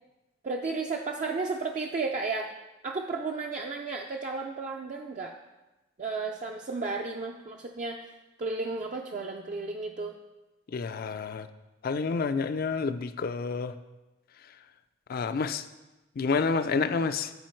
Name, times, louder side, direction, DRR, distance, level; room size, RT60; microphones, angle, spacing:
voice 1, 0.4-2.5 2.8-5.3 6.0-8.1 8.4-10.2, right 3 dB, 40° right, 1 dB, 0.4 m, -33 dB
voice 2, 10.7-11.5 11.8-13.7 15.1-15.6 16.2-17.3, left 4 dB, 50° left, 11 dB, 0.4 m, -29 dB
10.5 x 4.7 x 4.5 m, 1.1 s
head